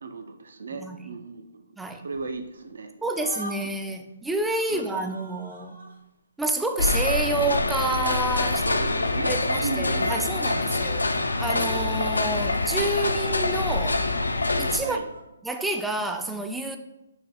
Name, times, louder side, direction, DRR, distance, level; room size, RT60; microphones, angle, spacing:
voice 1, 0.0-1.5 1.9-2.9 4.7-5.0 8.6-10.8 14.8-15.1, right 4 dB, 65° right, 7 dB, 0.5 m, -36 dB
sound 1, 2.0-2.7 3.0-3.9 4.5-6.0 6.8-10.4 10.6-10.8 11.0-11.8 12.6-13.2 13.8-15.2, right 1 dB, 85° right, 0.9 m, -45 dB
voice 2, 3.0-5.8 6.4-8.7 9.3-11.1 11.4-14.0 14.6-15.0 15.4-16.8, right 2 dB, 5° right, 5 dB, 0.3 m, -29 dB
sound 2, 6.8-14.8, left 2 dB, 85° left, 0.4 m, -25 dB
6.1 x 2.1 x 3.5 m, 0.91 s
figure-of-eight pair, 140°, 0 cm